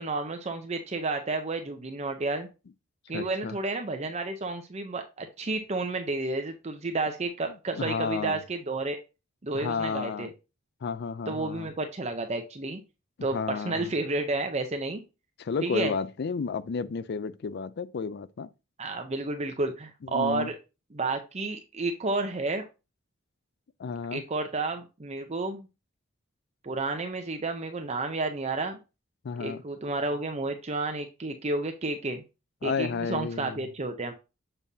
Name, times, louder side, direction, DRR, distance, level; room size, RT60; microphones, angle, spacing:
voice 1, 0.0-2.5 3.1-9.0 9.4-10.3 11.3-12.8 13.2-15.0 15.6-15.9 18.8-20.6 20.9-22.6 24.1-25.7 26.6-28.8 29.4-32.2 32.6-34.1, right 3 dB, 35° right, 0.7 m, -31 dB
voice 2, 3.1-3.6 7.8-8.4 9.5-10.3 10.8-11.7 13.3-13.9 15.4-18.5 20.0-20.5 23.8-24.2 29.2-29.6 32.6-33.6, left 5 dB, 55° left, 0.4 m, -32 dB
7.3 x 5.4 x 2.7 m
head